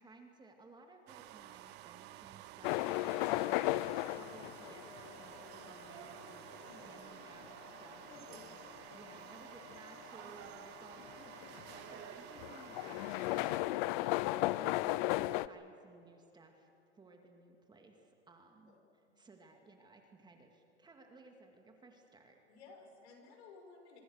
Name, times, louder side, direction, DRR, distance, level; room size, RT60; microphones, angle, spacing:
voice 1, 0.0-3.5 4.0-8.6 8.9-22.4, right 3 dB, 10° right, 3 dB, 2.2 m, -59 dB
sound 1, 1.1-13.6, right 15 dB, 30° right, 0.6 m, -52 dB
sound 2, 2.6-15.5, left 18 dB, 45° left, 0.6 m, -36 dB
voice 2, 8.1-8.8 18.7-19.1 22.5-24.0, left 3 dB, 70° left, 3 dB, 6.1 m, -57 dB
25.5 x 24.0 x 6.5 m, 2.8 s
hypercardioid pair, 135°, 35 cm